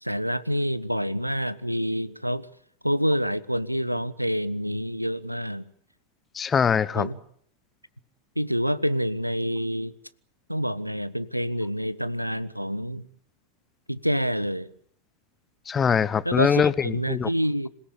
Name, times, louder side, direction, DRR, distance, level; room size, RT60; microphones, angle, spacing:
voice 1, 0.0-2.5 2.8-5.6 6.9-7.2 8.4-9.9 10.5-13.0 13.9-14.7 16.2-17.7, equal, 90° right, 18 dB, 0.9 m, -27 dB
voice 2, 6.3-7.1 15.7-17.3, left 7 dB, 20° left, 18 dB, 1.0 m, -23 dB
26.5 x 17.5 x 8.5 m, 0.65 s
figure-of-eight pair, 90°, 0 cm